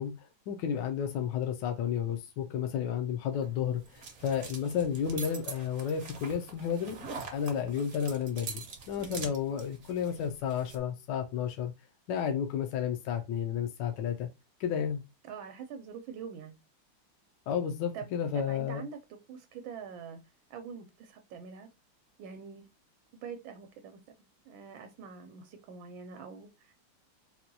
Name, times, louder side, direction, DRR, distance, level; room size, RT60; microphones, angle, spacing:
voice 1, 0.0-7.0 7.3-11.7 12.1-14.3 14.6-15.0 17.5-18.8, left 8 dB, 75° left, 1.2 m, -32 dB
sound 1, 3.3-10.8, right 5 dB, 55° right, 0.8 m, -44 dB
voice 2, 9.0-9.3 15.3-16.6 17.9-18.1 18.3-19.0 19.3-20.2 20.5-21.7 22.2-22.7 23.1-24.0 24.5-26.7, right 6 dB, 85° right, 1.4 m, -44 dB
4.2 x 2.2 x 2.6 m
omnidirectional pair, 2.1 m